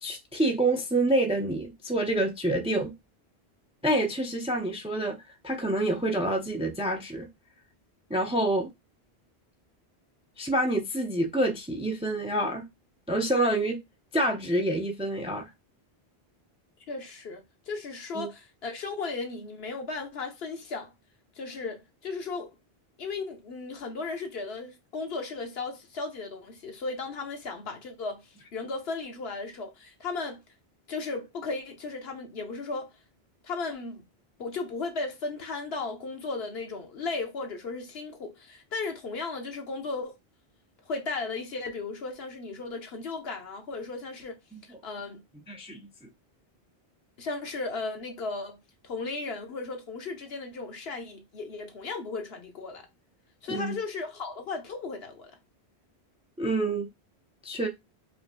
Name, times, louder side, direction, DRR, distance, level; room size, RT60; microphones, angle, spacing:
voice 1, 0.0-2.9 3.8-7.3 8.1-8.7 10.4-12.6 13.1-13.8 14.1-15.5 18.1-18.3 44.5-44.6 45.5-45.9 53.5-53.8 56.4-56.9 57.4-57.7, right 1 dB, 10° right, 0.4 m, -27 dB
voice 2, 16.9-20.9 21.4-22.5 23.0-30.4 30.9-32.9 33.4-34.0 34.4-40.1 40.8-44.4 44.8-45.2 47.2-48.6 48.8-52.9 53.4-55.3, left 3 dB, 70° left, 1.1 m, -35 dB
5.1 x 3.0 x 2.2 m
omnidirectional pair, 1.1 m